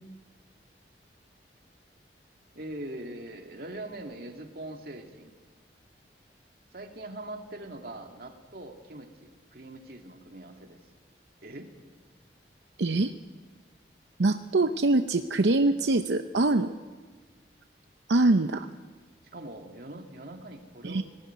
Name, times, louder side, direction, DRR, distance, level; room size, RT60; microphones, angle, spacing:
voice 1, 2.5-5.3 6.7-10.8 11.4-11.7 19.3-21.0, right 1 dB, 55° right, 3 dB, 2.3 m, -42 dB
voice 2, 12.8-13.1 14.2-16.8 18.1-18.7 20.8-21.0, right 2 dB, 90° right, 8 dB, 0.7 m, -24 dB
19.5 x 16.5 x 9.4 m, 1.4 s
head